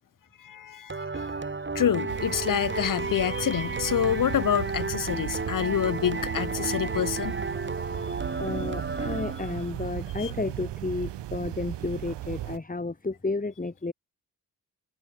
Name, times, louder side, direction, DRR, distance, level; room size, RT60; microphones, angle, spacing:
voice 1, 0.4-1.3 1.7-7.3 8.0-8.1 10.2-10.3, left 9 dB, 45° left, 0.9 m, -27 dB
sound 1, 0.9-9.8, right 3 dB, 25° right, 2.4 m, -33 dB
sound 2, 2.1-12.6, right 14 dB, 60° right, 1.0 m, -37 dB
voice 2, 8.4-13.9, left 3 dB, 15° left, 2.3 m, -32 dB
hypercardioid pair, 40°, 47 cm